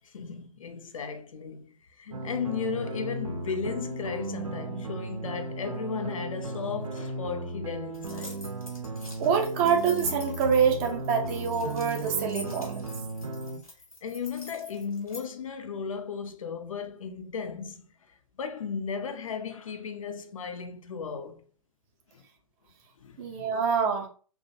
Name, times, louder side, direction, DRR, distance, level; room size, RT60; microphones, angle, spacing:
voice 1, 0.0-8.4 14.0-17.8 18.4-21.4 22.1-22.2 23.0-23.5, left 6 dB, 70° left, 0.4 m, -35 dB
sound 1, 2.1-13.6, right 2 dB, 85° right, 0.5 m, -36 dB
sound 2, 7.9-15.2, left 2 dB, 90° left, 0.9 m, -45 dB
voice 2, 9.2-12.9 23.2-24.1, right 6 dB, 25° right, 0.4 m, -26 dB
2.5 x 2.0 x 2.6 m
figure-of-eight pair, 120°, 18 cm